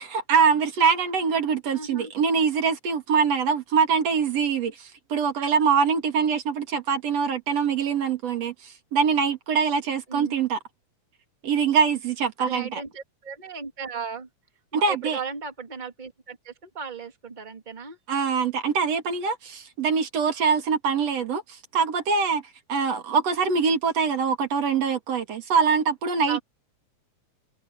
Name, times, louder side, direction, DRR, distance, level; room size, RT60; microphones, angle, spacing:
voice 1, 0.1-8.5 8.9-10.6 11.4-12.8 14.7-15.2 18.1-21.4 21.7-22.4 22.7-26.4, right 6 dB, 55° right, 3.1 m, -23 dB
voice 2, 1.7-2.1 5.5-5.6 10.1-10.4 12.4-14.3 14.7-18.0 26.3-26.4, right 5 dB, 15° right, 2.1 m, -36 dB
omnidirectional pair, 3.7 m